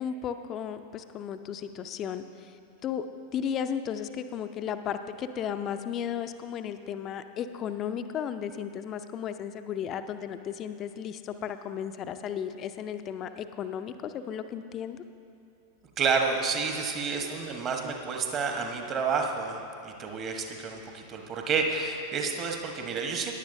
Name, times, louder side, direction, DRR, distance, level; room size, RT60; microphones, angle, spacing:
voice 1, 0.0-2.5 2.8-15.0, left 8 dB, 30° left, 10 dB, 0.5 m, -34 dB
voice 2, 16.0-23.3, right 5 dB, 30° right, 3 dB, 1.2 m, -30 dB
16.0 x 10.5 x 2.6 m, 2.6 s
figure-of-eight pair, 90°, 0 cm